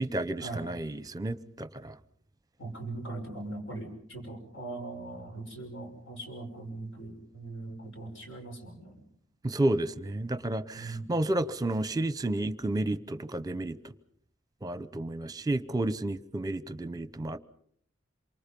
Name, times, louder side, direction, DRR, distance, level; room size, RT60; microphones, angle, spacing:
voice 1, 0.0-1.9 9.4-13.8 14.6-17.4, right 1 dB, 20° right, 0.9 m, -31 dB
voice 2, 2.6-9.0 10.7-11.1, right 2 dB, 65° left, 6.0 m, -40 dB
27.5 x 24.5 x 5.4 m
head